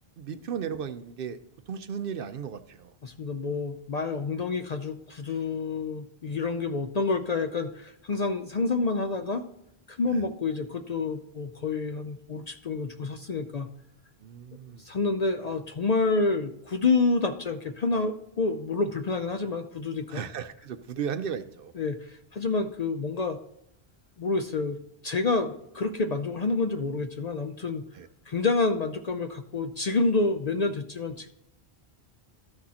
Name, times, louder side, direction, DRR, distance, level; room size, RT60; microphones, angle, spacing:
voice 1, 0.2-1.4 1.7-2.9 10.0-10.2 14.2-14.9 20.1-21.7 27.9-28.1, right 7 dB, 65° right, 11 dB, 0.7 m, -35 dB
voice 2, 3.0-9.4 9.9-13.7 14.8-20.2 21.8-23.4 24.2-27.8 28.3-31.3, left 3 dB, 50° left, 7 dB, 0.5 m, -28 dB
13.0 x 6.2 x 2.8 m, 0.81 s
omnidirectional pair, 1.1 m